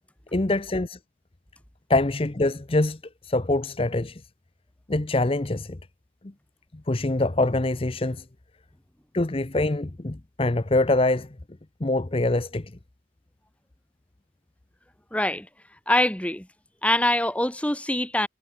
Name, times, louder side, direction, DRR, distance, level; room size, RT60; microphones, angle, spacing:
voice 1, 0.3-1.0 1.9-4.2 4.9-5.8 6.7-8.3 9.1-11.4 11.8-12.7, left 2 dB, 30° left, 0.8 m, -24 dB
voice 2, 15.1-15.5 15.9-16.5 16.8-18.3, left 1 dB, 5° left, 1.8 m, -24 dB
head